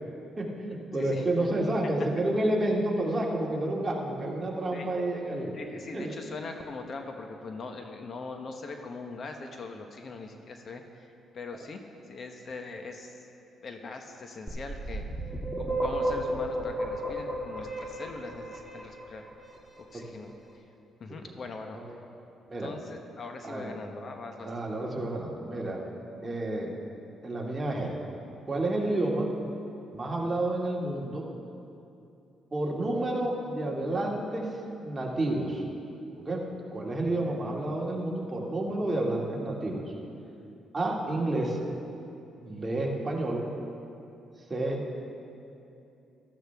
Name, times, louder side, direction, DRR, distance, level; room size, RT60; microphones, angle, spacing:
voice 1, 0.4-5.6 5.9-6.2 21.7-22.0 22.5-22.7 23.4-23.8 24.4-25.8 26.2-26.7 27.2-27.9 28.5-29.3 29.9-31.2 32.5-34.4 34.8-35.6 36.2-36.4 36.7-39.8 40.7-41.6 42.4-43.4 44.5-44.9, right 1 dB, 25° right, -2 dB, 2.2 m, -30 dB
voice 2, 0.9-1.3 2.2-2.3 4.7-4.9 5.5-13.2 13.6-15.1 15.5-19.2 19.9-20.6 21.0-22.0 22.6-24.5, left 3 dB, 50° left, 4 dB, 1.0 m, -41 dB
sound 1, 14.5-19.3, right 1 dB, 10° left, 2.3 m, -32 dB
15.0 x 13.5 x 3.5 m, 2.7 s
cardioid pair, 90°, 0 cm